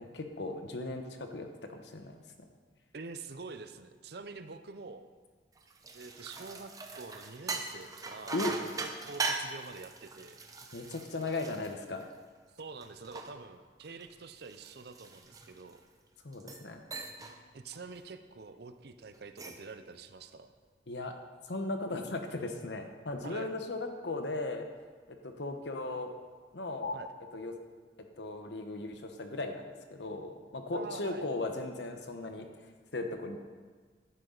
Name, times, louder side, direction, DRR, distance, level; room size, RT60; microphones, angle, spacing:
voice 1, 0.0-2.2 8.3-8.5 10.7-12.1 16.2-16.8 20.9-21.1 21.5-24.7 25.2-26.1 26.5-27.0 27.3-27.5 28.2-32.5 32.9-33.5, left 2 dB, 70° left, 5 dB, 1.1 m, -37 dB
voice 2, 2.9-5.1 5.9-8.4 8.8-10.4 12.6-15.8 17.5-20.5 23.2-23.5 26.9-27.1 30.7-31.3, right 4 dB, 60° right, 9 dB, 0.6 m, -46 dB
sound 1, 5.6-12.4 12.8-15.8 16.3-16.7 16.9-17.4 17.7-18.0 19.1-19.7, right 3 dB, 20° right, 0.7 m, -40 dB
11.0 x 9.2 x 4.0 m, 1.5 s
head